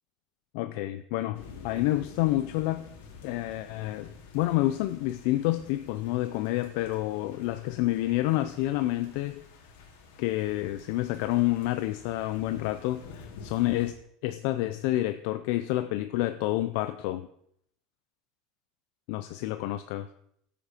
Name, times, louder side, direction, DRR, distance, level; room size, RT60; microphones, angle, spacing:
voice 1, 0.5-2.9 3.2-9.4 10.2-14.0 14.2-17.3 19.1-20.1, left 16 dB, 55° left, 10 dB, 0.5 m, -29 dB
sound 1, 1.3-13.9, left 5 dB, 90° left, 3.0 m, -50 dB
14.5 x 8.6 x 4.5 m, 0.72 s
cardioid pair, 175°, 0 cm